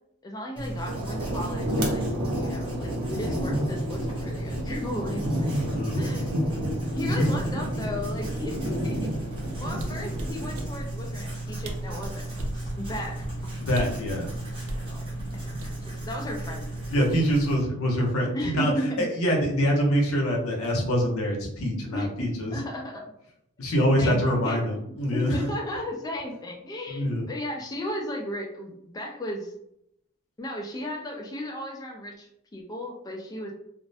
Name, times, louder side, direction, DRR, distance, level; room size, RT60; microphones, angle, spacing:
voice 1, 0.2-2.1 2.3-5.5 5.9-6.4 6.9-9.2 9.6-13.2 14.8-15.5 15.8-16.7 16.9-17.3 18.3-19.0 21.9-22.1 22.5-23.1 24.0-24.8 25.1-29.5 30.4-33.5, left 1 dB, 15° left, 0 dB, 0.3 m, -35 dB
Writing, 0.6-17.6, right 1 dB, 25° right, 0.7 m, -35 dB
sound 1, 0.9-10.7, equal, 90° right, 0.7 m, -30 dB
voice 2, 5.7-6.0 7.0-7.3 13.6-14.3 16.9-18.7 19.0-22.5 23.6-25.3 26.9-27.2, equal, 75° left, 0 dB, 0.6 m, -25 dB
sound 2, 9.7-10.7 11.4-11.5 11.6-12.6 13.7-14.0 14.6-14.9 15.6-16.1 16.4-16.7, right 1 dB, 65° right, 0.4 m, -36 dB
2.4 x 2.0 x 2.6 m, 0.76 s
head